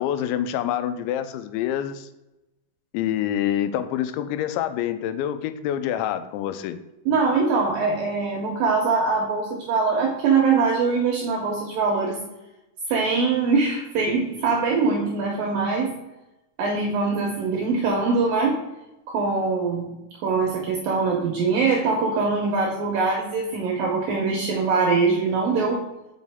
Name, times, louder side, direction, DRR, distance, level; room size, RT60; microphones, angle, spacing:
voice 1, 0.0-2.1 2.9-6.8, left 10 dB, 90° left, 10 dB, 2.9 m, -26 dB
voice 2, 7.1-12.2 12.9-15.9 16.6-18.5 19.1-19.9 20.2-25.8, right 4 dB, 75° right, -1 dB, 2.1 m, -22 dB
6.3 x 5.3 x 3.5 m, 0.98 s
omnidirectional pair, 5.1 m